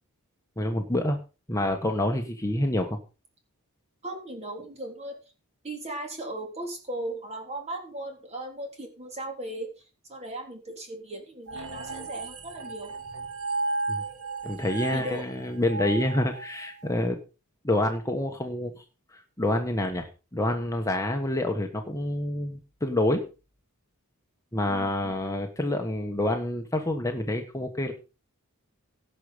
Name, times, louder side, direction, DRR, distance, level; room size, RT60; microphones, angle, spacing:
voice 1, 0.6-1.2 1.5-3.0 13.9-14.0 14.4-17.2 17.6-18.8 19.1-23.2 24.5-27.9, left 1 dB, 15° left, 3 dB, 1.4 m, -27 dB
voice 2, 4.0-5.2 5.6-9.7 10.1-12.9 14.9-15.3 24.7-25.2, right 1 dB, 30° right, 2 dB, 3.5 m, -37 dB
sound 1, 11.5-16.9, right 3 dB, 75° right, 2.5 m, -34 dB
17.5 x 6.6 x 5.1 m, 0.33 s
head